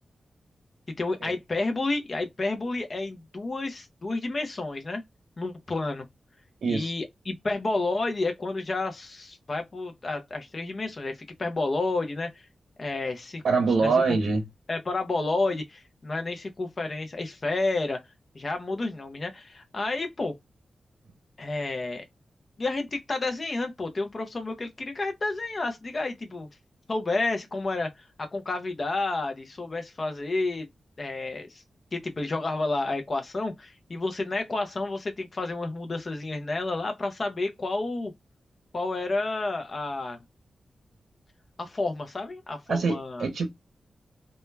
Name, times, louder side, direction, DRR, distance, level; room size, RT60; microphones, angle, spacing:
voice 1, 1.0-5.0 5.4-6.1 6.7-12.5 12.8-13.4 13.8-14.2 14.7-18.0 18.3-20.3 21.4-22.1 22.6-26.5 26.9-30.7 31.0-31.6 31.9-38.1 38.7-40.2 41.6-43.3, left 2 dB, 35° left, 0.4 m, -30 dB
voice 2, 6.6-6.9 13.4-14.4 42.7-43.5, right 4 dB, 80° right, 0.6 m, -24 dB
2.1 x 2.0 x 3.1 m
wide cardioid pair, 150°, 0 cm